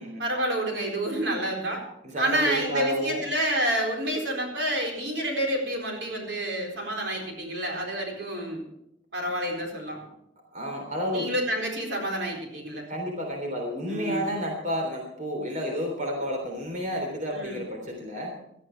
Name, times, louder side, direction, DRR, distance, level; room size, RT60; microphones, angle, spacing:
voice 1, 0.2-1.8 2.2-8.6 9.1-10.1 11.1-12.9 13.9-14.3 17.3-17.7, right 1 dB, 70° right, 1 dB, 4.2 m, -29 dB
voice 2, 2.1-3.2 10.5-11.3 12.9-18.3, equal, 40° right, 1 dB, 3.4 m, -31 dB
18.0 x 13.0 x 4.6 m, 0.80 s
head